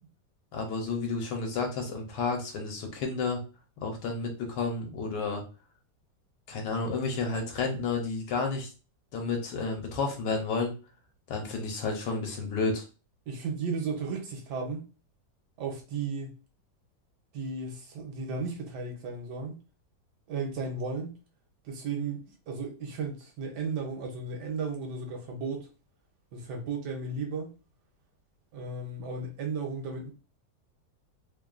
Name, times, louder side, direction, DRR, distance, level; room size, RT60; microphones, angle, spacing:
voice 1, 0.5-3.4 3.8-5.4 6.5-8.7 9.1-10.7 11.3-12.8, left 4 dB, 75° left, 1.3 m, -31 dB
voice 2, 13.3-14.8 15.6-16.4 17.3-19.6 20.3-21.1 21.6-22.2 22.5-25.7 26.3-27.5 28.5-30.1, right 4 dB, 70° right, 1.3 m, -34 dB
3.2 x 2.3 x 2.4 m
omnidirectional pair, 1.9 m